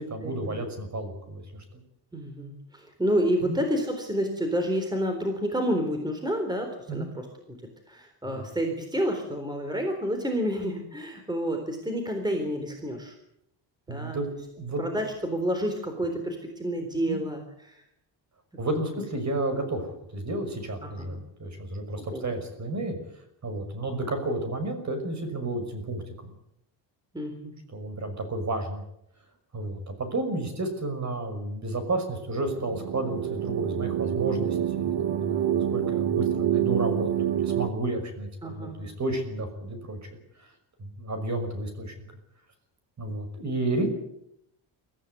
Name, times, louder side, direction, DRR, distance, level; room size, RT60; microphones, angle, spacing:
voice 1, 0.0-1.8 3.4-3.6 6.9-7.1 8.2-8.4 13.9-14.8 17.1-17.2 18.6-23.0 23.4-26.3 27.7-28.8 29.5-40.0 40.4-40.5 40.8-41.9 43.0-43.9, right 2 dB, 35° right, 8 dB, 5.8 m, -32 dB
voice 2, 2.1-7.3 7.9-13.1 13.9-14.2 14.8-17.8 18.7-18.9 20.8-21.2 22.0-22.3 27.1-27.5 38.4-38.8, equal, 10° right, 5 dB, 3.9 m, -29 dB
sound 1, 32.4-37.7, right 11 dB, 65° right, 1.5 m, -27 dB
24.0 x 15.0 x 9.5 m, 0.78 s
cardioid pair, 150°, 45 cm